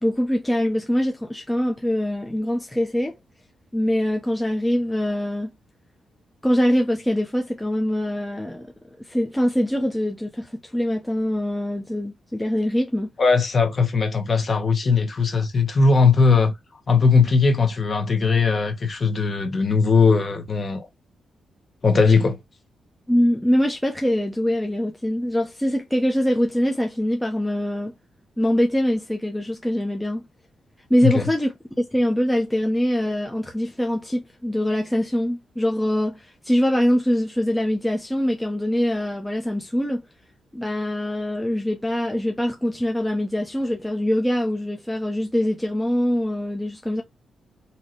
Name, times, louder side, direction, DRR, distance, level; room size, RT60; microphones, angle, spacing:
voice 1, 0.0-3.1 3.7-5.5 6.4-8.7 9.1-13.1 23.1-27.9 28.4-30.2 30.9-40.0 40.5-47.0, equal, 5° left, 0.6 m, -23 dB
voice 2, 13.2-16.5 16.9-20.9 21.8-22.4 31.0-31.2, left 4 dB, 35° left, 1.1 m, -19 dB
4.1 x 2.8 x 3.0 m
wide cardioid pair, 135°, 0 cm